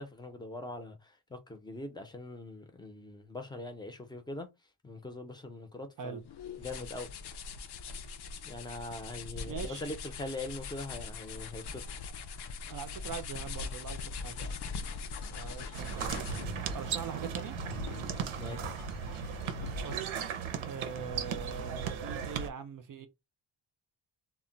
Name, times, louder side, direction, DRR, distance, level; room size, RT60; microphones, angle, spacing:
voice 1, 0.0-4.5 4.8-6.2 6.6-7.1 8.4-11.8 18.4-18.7, left 2 dB, 10° left, 0.5 m, -42 dB
sound 1, 6.2-16.6, left 4 dB, 60° left, 0.5 m, -41 dB
voice 2, 9.4-9.9 12.7-14.5 15.3-16.3 16.7-17.6 19.7-20.1 20.6-23.1, right 6 dB, 45° right, 0.5 m, -42 dB
sound 2, 14.3-20.0, left 1 dB, 90° left, 0.8 m, -44 dB
sound 3, 15.7-22.5, right 7 dB, 85° right, 0.7 m, -37 dB
2.2 x 2.1 x 3.8 m
wide cardioid pair, 130°, 47 cm